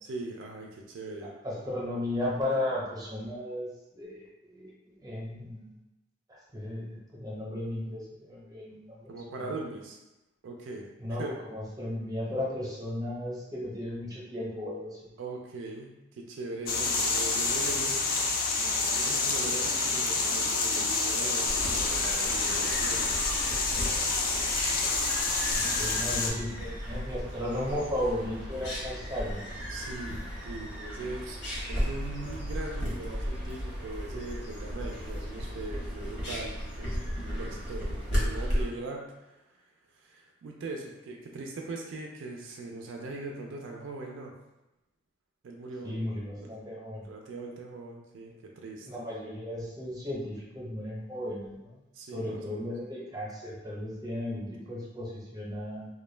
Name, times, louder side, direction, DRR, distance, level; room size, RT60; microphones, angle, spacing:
voice 1, 0.0-1.3 9.1-10.0 10.4-10.8 11.2-11.3 15.2-18.0 18.9-23.1 29.7-39.4 39.9-44.3 45.4-46.0 46.4-46.5 47.0-49.0 51.9-52.6, right 3 dB, 90° right, 0 dB, 0.4 m, -40 dB
voice 2, 1.2-4.7 5.0-5.7 6.5-9.5 11.0-15.0 25.5-29.4 45.8-47.0 48.9-51.8 52.1-55.9, left 1 dB, 20° right, -6 dB, 0.7 m, -35 dB
sound 1, 16.7-26.3, left 3 dB, 50° left, 0.3 m, -28 dB
sound 2, 21.5-38.7, equal, 75° left, 0.9 m, -35 dB
2.2 x 2.1 x 3.1 m, 0.98 s
head